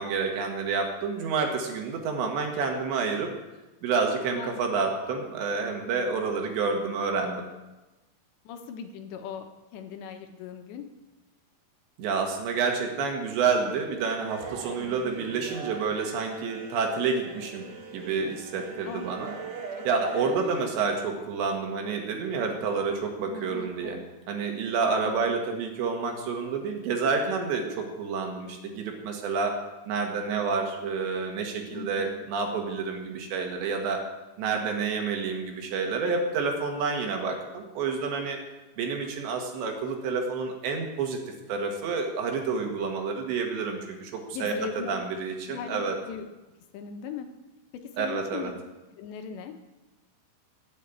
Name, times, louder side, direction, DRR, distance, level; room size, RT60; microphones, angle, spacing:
voice 1, 0.0-3.3 3.8-7.4 12.0-17.7 17.9-19.3 19.9-24.0 24.3-29.6 29.9-34.0 34.4-38.4 38.8-41.2 41.5-46.0 48.0-48.5, right 5 dB, 75° right, 3 dB, 3.9 m, -29 dB
voice 2, 4.3-4.8 8.4-9.5 9.7-10.9 14.8-15.1 18.8-19.1 19.8-20.5 23.3-24.3 25.0-25.3 31.7-32.2 44.3-44.9 45.5-46.3 46.7-47.3 48.0-48.5 49.0-49.5, left 7 dB, 80° left, 6 dB, 3.2 m, -39 dB
sound 1, 14.3-20.7, right 5 dB, 60° right, 2.4 m, -40 dB
12.5 x 8.6 x 8.6 m, 1.1 s
omnidirectional pair, 5.1 m